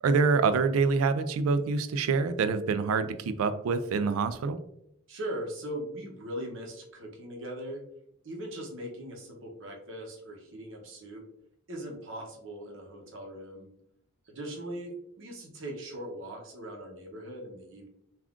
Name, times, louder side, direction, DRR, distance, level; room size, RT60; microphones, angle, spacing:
voice 1, 0.0-4.6, right 4 dB, 90° right, 11 dB, 0.3 m, -26 dB
voice 2, 5.1-7.8 8.2-11.2 11.7-13.7 14.3-17.9, right 1 dB, 60° right, 0 dB, 0.7 m, -40 dB
3.5 x 2.3 x 2.4 m, 0.75 s
head